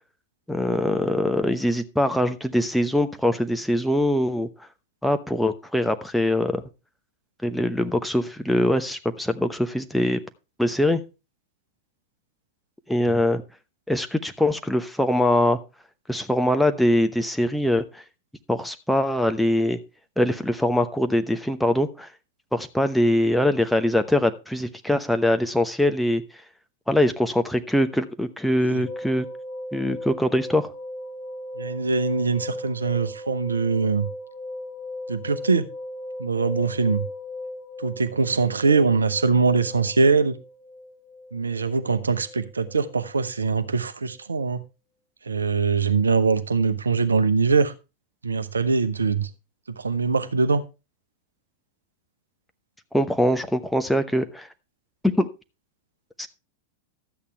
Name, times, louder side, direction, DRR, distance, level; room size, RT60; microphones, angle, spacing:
voice 1, 0.5-4.5 5.0-6.6 7.4-10.2 10.6-11.0 12.9-13.4 13.9-15.6 16.1-18.0 18.5-19.8 20.2-22.1 22.5-26.2 26.9-29.3 29.7-30.7 52.9-54.5 55.0-55.3 56.2-56.3, left 1 dB, ahead, 7 dB, 0.9 m, -22 dB
sound 1, 28.9-43.8 44.1-44.2, left 1 dB, 50° left, 3.0 m, -38 dB
voice 2, 31.6-34.1 35.1-35.6 36.2-37.0 37.8-40.3 41.3-44.6 45.3-47.7 48.2-49.3 49.8-50.6, right 4 dB, 75° right, 10 dB, 0.8 m, -22 dB
12.5 x 8.5 x 3.4 m, 0.29 s
figure-of-eight pair, 90°, 0 cm